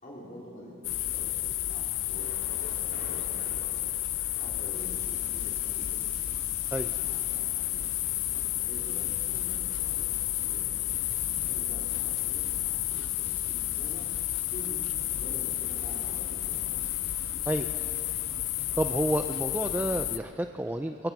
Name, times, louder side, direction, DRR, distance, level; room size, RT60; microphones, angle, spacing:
voice 1, 0.0-3.7 4.4-6.0 6.9-10.7 11.5-14.0 14.5-14.9 15.2-16.8, equal, 40° left, -4 dB, 3.2 m, -48 dB
sound 1, 0.8-20.2, left 14 dB, 65° left, 0.6 m, -31 dB
Thunder, 2.2-14.0, right 1 dB, 90° right, 2.8 m, -52 dB
sound 2, 4.7-20.0, right 1 dB, 35° right, 4.0 m, -52 dB
voice 2, 18.8-21.0, right 1 dB, 10° right, 6 dB, 0.4 m, -30 dB
24.5 x 22.0 x 6.0 m, 3.0 s
head